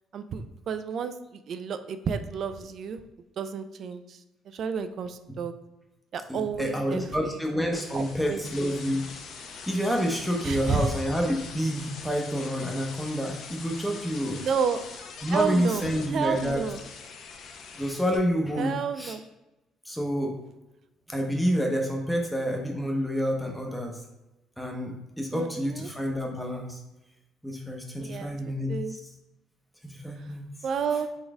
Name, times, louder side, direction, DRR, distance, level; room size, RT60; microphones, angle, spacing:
voice 1, 0.1-3.0 3.4-4.2 4.5-5.5 6.1-7.4 7.9-8.8 10.4-10.9 14.4-14.8 15.3-16.8 18.6-19.2 25.3-25.9 28.0-28.4 28.7-29.0 30.2-30.3 30.6-31.1, right 6 dB, 45° right, 10 dB, 0.3 m, -31 dB
voice 2, 6.3-9.0 9.7-14.4 15.2-16.6 17.8-19.2 19.9-20.3 21.1-23.9 24.6-26.8 27.4-28.7 29.8-30.4, equal, ahead, 1 dB, 0.7 m, -28 dB
sound 1, 7.7-18.2, left 5 dB, 55° left, 0.6 m, -43 dB
4.0 x 3.9 x 3.4 m, 0.98 s
cardioid pair, 150°, 0 cm